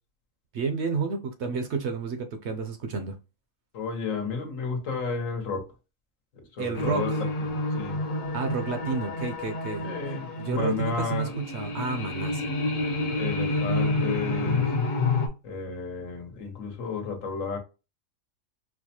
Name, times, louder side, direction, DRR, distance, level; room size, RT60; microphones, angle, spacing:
voice 1, 0.5-3.1 6.6-7.2 8.3-9.9 10.3-12.5, right 4 dB, 65° right, 0.8 m, -30 dB
voice 2, 3.7-5.7 6.5-8.0 9.8-11.3 13.2-14.7 15.4-17.6, left 5 dB, 75° left, 1.3 m, -32 dB
sound 1, 6.7-15.3, left 2 dB, 45° left, 0.7 m, -29 dB
4.5 x 2.2 x 2.8 m
omnidirectional pair, 1.4 m